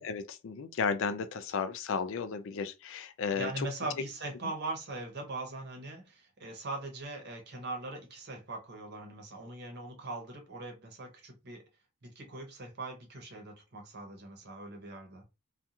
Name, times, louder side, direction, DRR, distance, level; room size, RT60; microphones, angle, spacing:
voice 1, 0.0-3.7, left 5 dB, 60° left, 0.4 m, -34 dB
voice 2, 3.3-11.6 12.0-15.2, right 2 dB, 50° right, 0.9 m, -41 dB
2.4 x 2.3 x 2.8 m
head